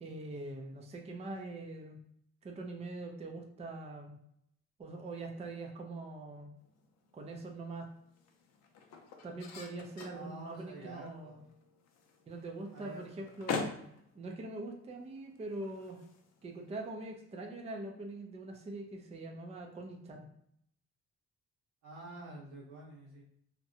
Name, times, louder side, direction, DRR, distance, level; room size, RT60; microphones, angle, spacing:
voice 1, 0.0-2.0 2.4-4.2 4.8-6.5 7.1-7.9 9.2-11.4 12.3-13.6 14.1-16.0 16.4-20.3, right 2 dB, 20° right, 2 dB, 0.4 m, -43 dB
sound 1, 6.6-16.9, left 5 dB, 60° left, 0.5 m, -46 dB
voice 2, 10.1-11.4 12.7-13.3 21.8-23.2, right 1 dB, 90° right, -5 dB, 1.1 m, -48 dB
2.7 x 2.1 x 2.6 m, 0.71 s
cardioid pair, 90°, 30 cm